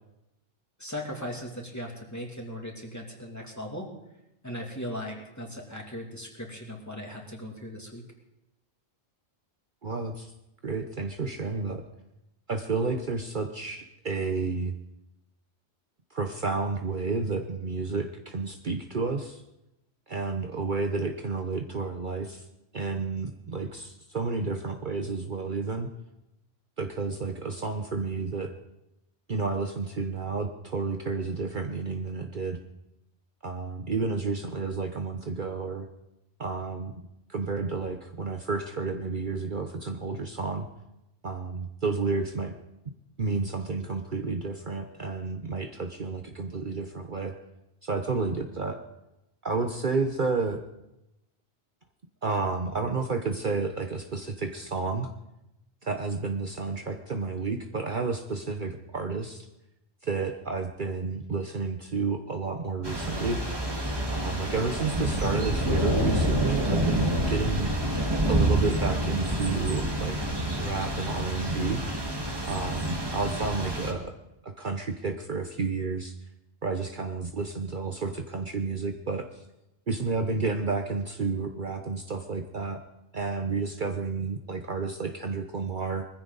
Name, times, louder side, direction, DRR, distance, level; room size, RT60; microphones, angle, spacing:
voice 1, 0.8-3.9 4.4-8.0, equal, 15° left, 0 dB, 2.7 m, -38 dB
voice 2, 9.8-10.3 10.6-11.8 12.5-14.7 16.1-19.4 20.1-22.5 22.7-25.9 26.8-28.5 29.3-32.6 33.4-35.9 36.4-36.9 37.3-40.7 41.2-42.5 43.2-47.3 47.8-48.8 49.4-50.6 52.2-55.1 55.8-59.5 60.0-63.4 64.1-67.7 68.3-70.3 70.6-71.8 72.5-74.1 74.4-76.1 76.6-79.4 79.9-82.8 83.1-86.0, right 4 dB, 50° right, 5 dB, 1.1 m, -31 dB
Thunder / Rain, 62.8-73.9, right 1 dB, 20° right, 1.9 m, -28 dB
21.0 x 15.0 x 4.1 m, 0.89 s
omnidirectional pair, 1.1 m